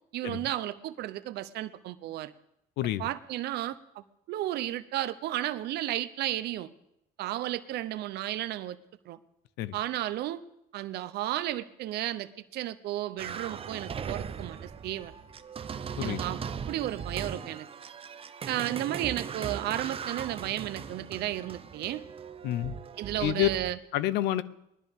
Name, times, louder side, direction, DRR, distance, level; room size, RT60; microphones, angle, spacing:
voice 1, 0.1-2.3 3.0-6.7 7.2-8.8 9.0-9.2 9.7-10.4 10.7-15.1 16.0-16.4 16.7-17.7 18.5-22.0 23.0-23.8, right 14 dB, 75° right, 13 dB, 0.7 m, -33 dB
voice 2, 2.8-3.1 9.6-9.8 16.0-16.2 22.4-22.7 23.2-23.5 23.9-24.4, left 13 dB, 85° left, 17 dB, 0.6 m, -28 dB
sound 1, 13.2-23.7, right 7 dB, 35° right, 0.7 m, -39 dB
20.0 x 12.5 x 3.6 m, 0.80 s
cardioid pair, 110°, 17 cm